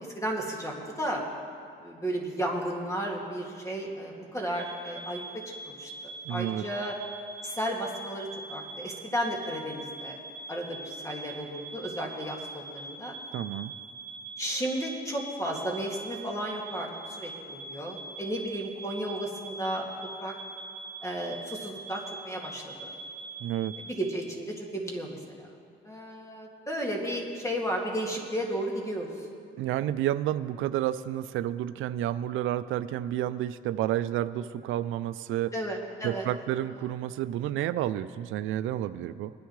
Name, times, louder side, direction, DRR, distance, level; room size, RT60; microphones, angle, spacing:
voice 1, 0.1-1.2 1.8-6.9 7.4-10.2 10.5-13.2 14.4-19.9 20.2-20.3 21.0-22.9 23.9-25.4 25.8-29.1 35.5-36.3, right 1 dB, 15° left, 0 dB, 2.2 m, -33 dB
sound 1, 4.5-23.9, right 3 dB, 25° right, 2.1 m, -43 dB
voice 2, 6.3-6.6 13.3-13.7 23.4-23.8 29.6-35.5 36.0-39.3, right 12 dB, 85° right, 13 dB, 0.4 m, -30 dB
21.5 x 10.0 x 3.2 m, 2.3 s
cardioid pair, 90°, 20 cm